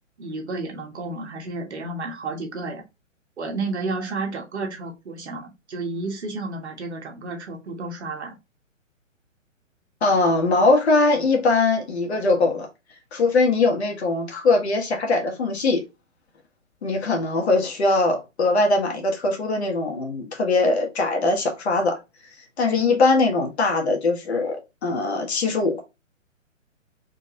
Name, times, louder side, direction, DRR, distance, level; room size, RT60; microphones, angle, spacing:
voice 1, 0.2-2.8 3.4-8.4, right 3 dB, 55° right, 1.6 m, -31 dB
voice 2, 10.0-12.7 13.1-15.8 16.8-22.0 22.6-25.8, left 3 dB, 55° left, 1.6 m, -21 dB
4.1 x 3.7 x 2.7 m
figure-of-eight pair, 125°, 39 cm